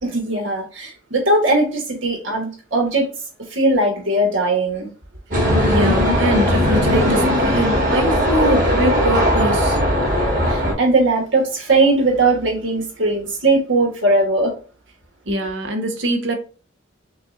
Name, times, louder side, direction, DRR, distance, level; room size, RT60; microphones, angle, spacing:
voice 1, 0.0-3.1 3.5-4.9 10.5-14.5, right 2 dB, 85° right, 1.5 m, -19 dB
sound 1, 5.3-10.7, equal, 45° right, 2.0 m, -18 dB
voice 2, 5.7-9.8 15.3-16.3, right 1 dB, 70° right, 0.9 m, -22 dB
6.5 x 2.4 x 2.7 m
head